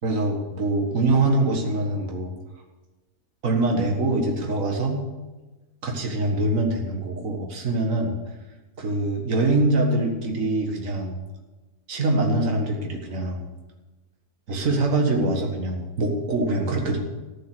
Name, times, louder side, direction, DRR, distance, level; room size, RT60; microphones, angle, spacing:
voice 1, 0.0-2.3 3.4-5.0 5.8-8.2 8.8-11.2 11.9-13.4 14.5-17.0, right 2 dB, 55° right, 2 dB, 2.1 m, -24 dB
14.0 x 9.3 x 6.2 m, 1.2 s
omnidirectional pair, 1.6 m